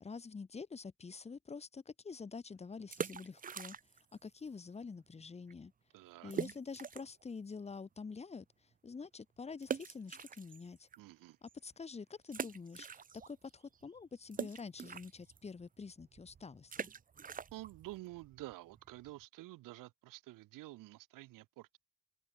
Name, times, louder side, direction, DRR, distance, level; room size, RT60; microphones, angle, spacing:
voice 1, 0.0-3.8 4.2-5.7 6.2-8.5 8.8-10.9 11.4-12.9 13.3-16.9, left 5 dB, 20° left, 0.6 m, -47 dB
sound 1, 2.8-4.2 4.4-4.5 5.1-5.2 5.5-5.6 6.3-7.2 7.7-7.8 9.6-11.0 11.5-11.6 12.3-13.5 13.7-19.2, right 7 dB, 25° right, 0.4 m, -44 dB
voice 2, 5.9-6.3 11.0-11.4 17.5-21.8, right 18 dB, 80° right, 0.5 m, -50 dB
supercardioid pair, 45°, 32 cm